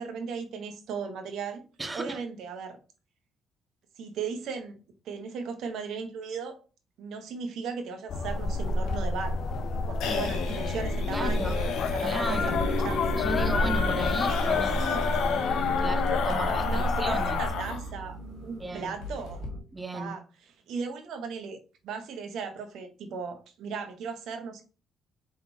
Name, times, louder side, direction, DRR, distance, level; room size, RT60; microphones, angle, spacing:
voice 1, 0.0-1.6 1.9-2.8 4.0-4.8 5.0-6.5 7.0-9.5 9.9-13.0 14.3-15.1 16.6-19.4 19.9-20.2 20.7-21.6 21.8-24.6, right 5 dB, 80° right, 0.9 m, -37 dB
voice 2, 1.8-2.2 10.7-10.8 11.1-11.6 12.0-12.6 13.2-14.8 15.8-17.4 18.6-19.0 19.7-20.2, right 2 dB, 20° right, 0.5 m, -35 dB
sound 1, 8.1-17.5, left 3 dB, 60° left, 0.5 m, -29 dB
sound 2, 8.8-17.9 18.2-18.3 18.6-18.7 19.0-19.5, left 5 dB, 90° left, 1.0 m, -32 dB
sound 3, 12.3-19.6, right 1 dB, 35° right, 1.6 m, -39 dB
4.4 x 3.7 x 2.6 m
cardioid pair, 90°, 0 cm